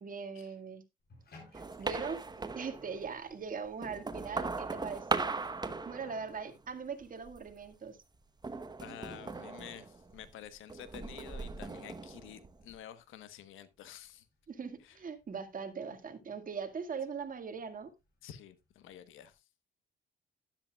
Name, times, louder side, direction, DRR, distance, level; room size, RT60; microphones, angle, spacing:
voice 1, 0.0-0.8 1.5-2.2 2.6-5.3 5.9-8.0 14.5-17.9, right 5 dB, 45° right, 1.9 m, -41 dB
Bathtub (filling or washing), 1.0-19.3, left 2 dB, 50° left, 6.4 m, -67 dB
sound 1, 1.5-3.2 3.7-6.7 7.0-7.6 8.4-10.3 10.7-12.8, right 3 dB, 20° right, 1.0 m, -39 dB
voice 2, 8.8-14.3 14.8-15.0 18.2-19.5, left 11 dB, 85° left, 1.2 m, -50 dB
12.5 x 10.5 x 2.3 m
cardioid pair, 90°, 20 cm